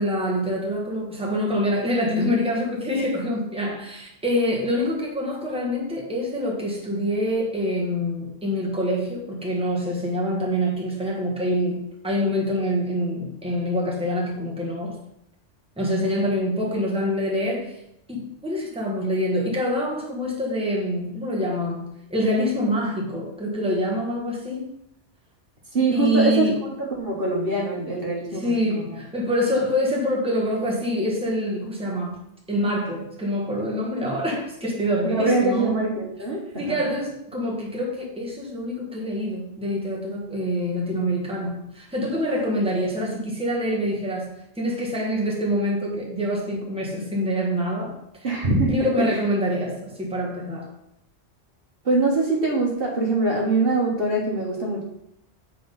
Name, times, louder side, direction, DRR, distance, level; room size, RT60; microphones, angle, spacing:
voice 1, 0.0-15.0 15.8-17.8 18.1-24.8 25.9-26.6 28.3-32.2 32.5-35.7 36.6-48.0 48.7-50.7, equal, 5° right, -3 dB, 1.5 m, -25 dB
voice 2, 25.7-28.8 35.0-36.8 48.2-49.1 51.8-54.8, right 2 dB, 50° right, -2 dB, 1.5 m, -23 dB
7.8 x 3.8 x 5.4 m, 0.79 s
omnidirectional pair, 1.3 m